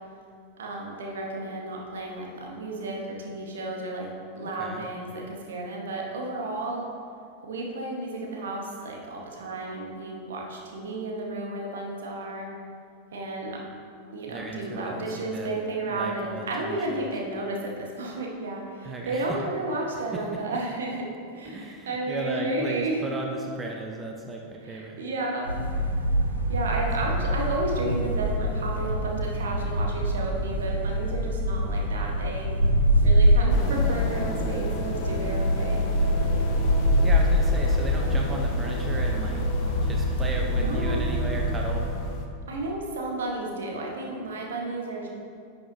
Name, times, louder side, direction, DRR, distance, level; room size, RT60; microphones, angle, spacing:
voice 1, 0.6-6.9 7.4-12.5 13.1-13.6 14.1-23.0 24.6-25.8 26.5-32.5 33.0-35.9 38.0-38.1 40.4-41.0 42.5-45.1, right 2 dB, 65° right, -1 dB, 1.3 m, -32 dB
voice 2, 14.3-15.5 15.9-17.1 18.8-19.2 20.1-20.2 20.5-20.6 21.5-25.0 26.8-27.2 37.0-39.4 39.8-41.9, right 2 dB, 15° right, 0 dB, 0.8 m, -35 dB
sound 1, 25.4-41.9, equal, 80° right, 0.9 m, -24 dB
sound 2, 33.5-42.3, left 3 dB, 40° left, 0.8 m, -36 dB
10.5 x 6.8 x 2.8 m, 2.3 s
figure-of-eight pair, 90°, 0 cm